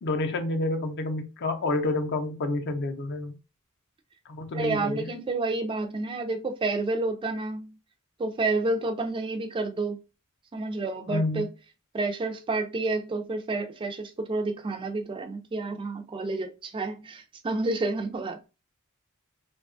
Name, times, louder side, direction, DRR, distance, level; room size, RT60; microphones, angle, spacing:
voice 1, 0.0-3.3 4.3-4.9 11.1-11.4, left 2 dB, 55° left, 0.5 m, -29 dB
voice 2, 4.5-7.7 8.2-10.0 10.5-11.5 11.9-18.5, right 3 dB, 25° right, 0.3 m, -29 dB
2.7 x 2.2 x 2.5 m
head